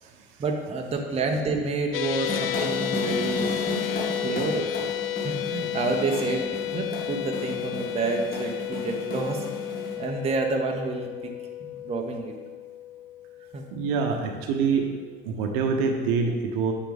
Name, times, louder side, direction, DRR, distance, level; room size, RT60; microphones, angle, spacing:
voice 1, 0.4-3.5 4.2-9.4 10.0-12.3 13.5-13.6, right 3 dB, 20° right, 2 dB, 0.9 m, -29 dB
sound 1, 1.9-14.3, left 13 dB, 65° left, 0.5 m, -32 dB
sound 2, 2.2-9.9, left 1 dB, 30° left, 1.5 m, -34 dB
voice 2, 13.7-14.9 15.2-16.7, right 5 dB, 50° right, 4 dB, 1.0 m, -25 dB
8.9 x 6.9 x 3.5 m, 1.5 s
figure-of-eight pair, 70°, 30 cm